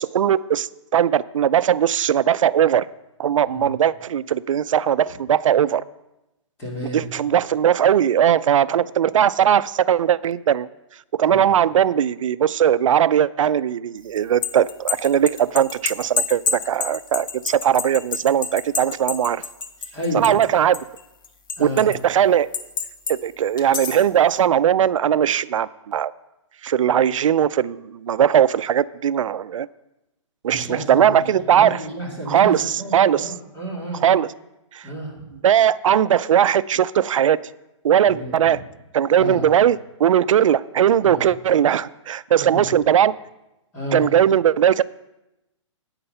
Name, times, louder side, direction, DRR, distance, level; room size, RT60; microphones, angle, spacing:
voice 1, 0.0-2.9 3.2-5.8 6.9-10.7 11.1-19.4 20.1-20.8 21.6-22.5 23.1-26.1 26.6-29.7 30.4-31.8 32.3-33.3 34.0-34.3 34.7-34.8 35.4-37.4 37.8-38.6 38.9-43.2 43.9-44.8, right 9 dB, 90° right, 17 dB, 0.4 m, -19 dB
voice 2, 6.6-7.0 11.3-11.4 19.9-20.4 21.6-21.9 30.5-31.2 31.5-34.0 34.8-35.3 38.1-38.6 39.2-39.4 41.0-41.2 42.3-42.6 43.7-44.0, equal, 15° left, -3 dB, 2.4 m, -31 dB
sound 1, 14.2-20.5 20.7-22.0 22.5-23.2 23.6-24.1, left 5 dB, 40° left, 0.9 m, -27 dB
9.9 x 8.7 x 5.5 m, 0.93 s
hypercardioid pair, 170°, 16 cm